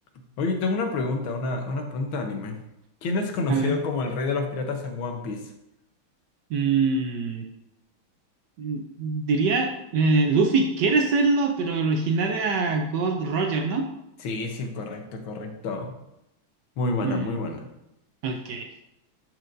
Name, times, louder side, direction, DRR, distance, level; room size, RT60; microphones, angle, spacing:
voice 1, 0.4-2.6 3.0-5.4 14.2-15.9 16.8-17.6, left 3 dB, 70° left, 4 dB, 1.6 m, -28 dB
voice 2, 6.5-7.5 8.6-13.9 17.0-17.3 18.2-18.7, right 4 dB, 80° right, 4 dB, 0.9 m, -24 dB
10.5 x 4.5 x 2.5 m, 0.85 s
omnidirectional pair, 2.4 m